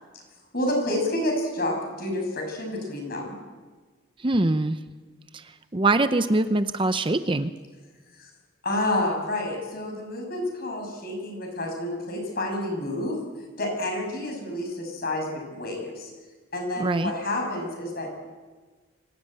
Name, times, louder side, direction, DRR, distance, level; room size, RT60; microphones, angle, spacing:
voice 1, 0.5-3.4 8.2-8.3 8.6-13.2 13.6-16.1 16.5-18.1, left 1 dB, 50° left, 2 dB, 7.2 m, -29 dB
voice 2, 4.2-4.8 5.3-7.5 16.8-17.1, right 2 dB, 25° right, 10 dB, 0.7 m, -23 dB
25.0 x 17.0 x 9.0 m, 1.4 s
head